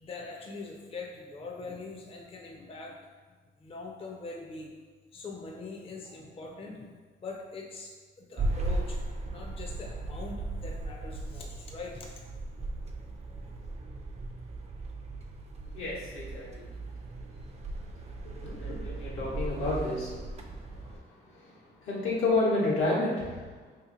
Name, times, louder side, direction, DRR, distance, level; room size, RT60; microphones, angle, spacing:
voice 1, 0.0-3.0 3.6-4.7 5.1-6.9 7.2-9.0 9.3-12.2, left 3 dB, 30° left, 0 dB, 0.5 m, -42 dB
sound 1, 8.4-21.0, right 2 dB, 35° right, 0.5 m, -37 dB
voice 2, 15.7-16.8 17.6-23.6, left 2 dB, 85° left, -6 dB, 1.1 m, -32 dB
2.8 x 2.7 x 3.8 m, 1.4 s
cardioid pair, 90°, 20 cm